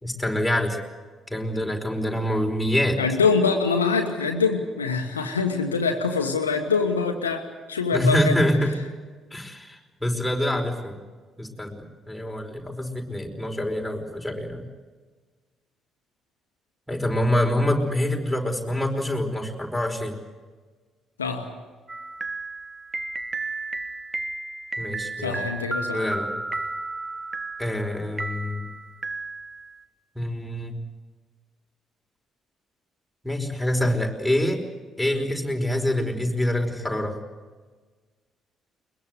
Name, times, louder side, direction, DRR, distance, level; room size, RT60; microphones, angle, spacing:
voice 1, 0.0-0.8 1.3-3.0 7.9-8.7 9.3-11.0 11.4-14.7 16.9-20.2 24.8-25.4 25.9-26.3 27.6-28.6 30.2-30.8 33.2-34.6 35.0-37.2, left 1 dB, 5° left, 2 dB, 5.1 m, -25 dB
voice 2, 3.0-8.3 21.2-21.5 25.2-26.1, left 4 dB, 90° left, 3 dB, 1.3 m, -24 dB
sound 1, 21.9-29.8, right 2 dB, 25° right, 1.6 m, -33 dB
22.5 x 22.0 x 8.1 m, 1.4 s
figure-of-eight pair, 45°, 0 cm